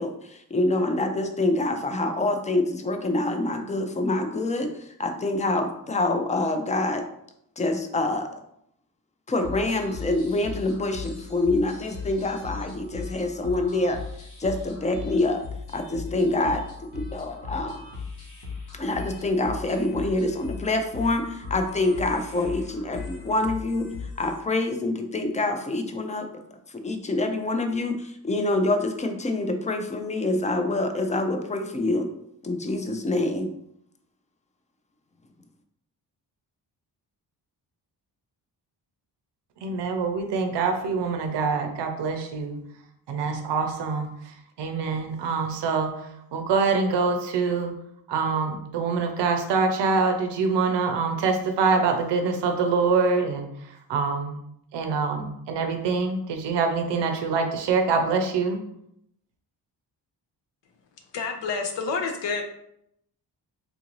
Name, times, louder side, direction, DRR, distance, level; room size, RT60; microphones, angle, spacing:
voice 1, 0.0-7.0 7.6-8.3 9.3-14.0 14.4-15.4 15.7-16.6 16.9-17.8 18.7-23.9 24.2-26.4 26.7-32.1 32.4-33.5, left 2 dB, 20° left, 6 dB, 0.4 m, -26 dB
sound 1, 9.4-24.4, left 4 dB, 60° left, 1.1 m, -38 dB
voice 2, 39.6-42.6 43.1-47.7 48.1-54.4 54.7-58.6, right 4 dB, 80° right, 5 dB, 0.6 m, -25 dB
voice 3, 61.1-62.4, left 4 dB, 85° left, 4 dB, 0.7 m, -28 dB
3.7 x 2.5 x 3.0 m, 0.75 s
cardioid pair, 95°, 42 cm